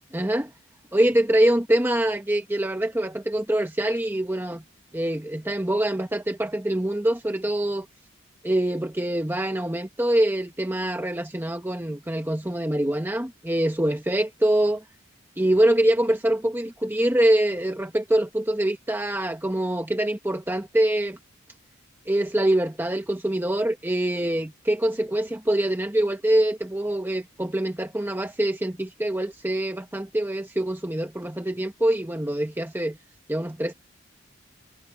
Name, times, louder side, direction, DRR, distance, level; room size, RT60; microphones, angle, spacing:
voice 1, 0.1-0.5 0.9-4.6 4.9-7.9 8.4-14.8 15.4-21.2 22.1-33.0 33.3-33.7, right 1 dB, 10° right, 1.0 m, -24 dB
head